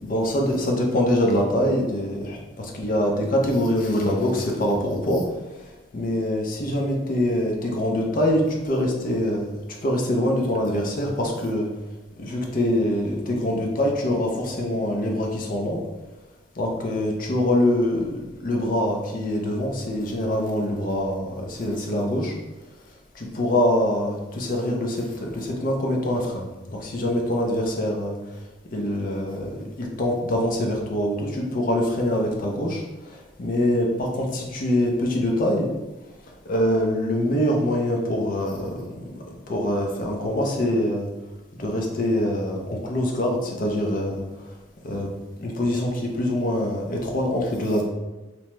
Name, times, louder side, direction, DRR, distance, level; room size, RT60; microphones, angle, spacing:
voice 1, 0.0-5.2 5.9-9.5 9.8-11.7 12.2-15.8 16.6-22.3 23.1-26.4 26.7-28.2 28.7-35.7 36.5-39.0 39.5-41.1 41.6-44.2 44.8-45.1 45.4-47.8, left 1 dB, 45° left, 0 dB, 0.5 m, -24 dB
2.8 x 2.1 x 3.0 m, 1.1 s
head